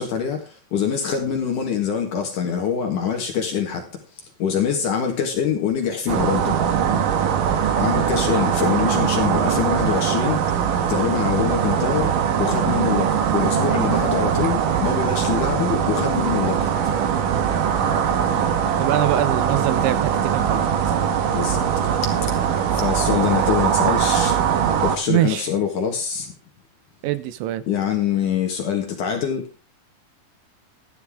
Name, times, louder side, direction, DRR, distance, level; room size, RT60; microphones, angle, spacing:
voice 1, 0.0-4.0 4.4-6.6 7.8-10.4 10.9-12.1 12.4-16.7 21.3-21.9 22.2-22.3 22.7-24.4 24.8-26.3 27.7-29.5, left 7 dB, 60° left, 2.5 m, -24 dB
sound 1, 6.1-25.0, right 8 dB, 65° right, 2.3 m, -21 dB
voice 2, 18.8-21.0 25.1-25.5 27.0-27.6, right 14 dB, 85° right, 3.1 m, -24 dB
12.5 x 11.5 x 3.6 m
omnidirectional pair, 5.2 m